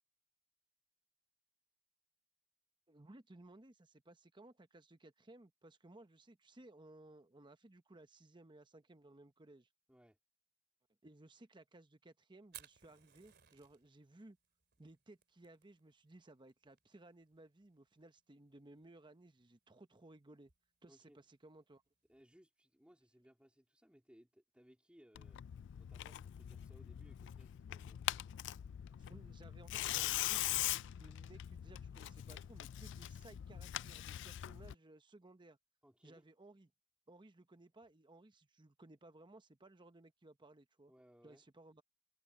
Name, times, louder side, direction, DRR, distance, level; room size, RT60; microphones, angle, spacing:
voice 1, 2.9-9.7 11.0-14.4 14.8-20.5 20.8-21.8 29.0-35.6 36.0-36.7 37.1-40.9 41.2-41.8, right 2 dB, 25° right, 0.9 m, -60 dB
Fire, 12.4-22.2, right 12 dB, 55° right, 2.9 m, -64 dB
voice 2, 20.9-21.2 22.1-25.4 25.8-28.0 35.8-36.3 40.9-41.4, equal, 5° right, 3.3 m, -65 dB
Tearing, 25.1-34.7, left 14 dB, 60° left, 0.3 m, -42 dB
head